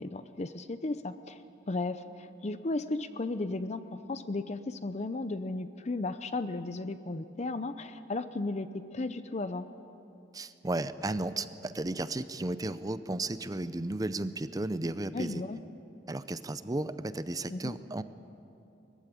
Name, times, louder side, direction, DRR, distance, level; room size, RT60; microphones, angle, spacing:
voice 1, 0.0-1.4 1.7-3.8 4.1-9.7 15.1-15.6 17.5-17.8, left 2 dB, 35° left, 11 dB, 0.6 m, -35 dB
voice 2, 10.3-15.4 16.1-18.0, right 2 dB, 20° right, 13 dB, 0.5 m, -34 dB
21.0 x 15.0 x 10.0 m, 2.8 s
head